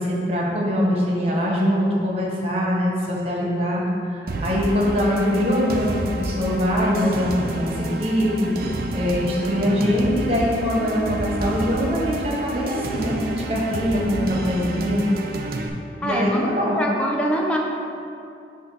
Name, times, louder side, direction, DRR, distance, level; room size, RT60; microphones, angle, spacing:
voice 1, 0.0-15.0 16.0-16.8, equal, 35° right, -3 dB, 1.0 m, -23 dB
sound 1, 4.3-15.7, right 2 dB, 55° right, 0.4 m, -29 dB
voice 2, 16.0-16.5 16.8-17.6, equal, 5° left, -1 dB, 0.5 m, -24 dB
6.5 x 2.6 x 5.5 m, 2.5 s
head